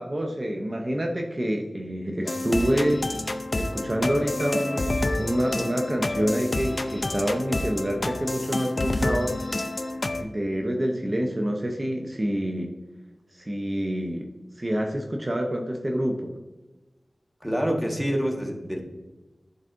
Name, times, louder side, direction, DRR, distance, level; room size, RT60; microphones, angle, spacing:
voice 1, 0.0-3.0 3.6-9.3 10.2-12.7 13.3-16.3, equal, 40° right, 2 dB, 0.7 m, -27 dB
sound 1, 2.3-10.2, left 2 dB, 55° left, 0.5 m, -28 dB
voice 2, 17.4-18.8, equal, ahead, 0 dB, 1.4 m, -26 dB
11.0 x 4.0 x 2.6 m, 1.1 s
wide cardioid pair, 50°, 0 cm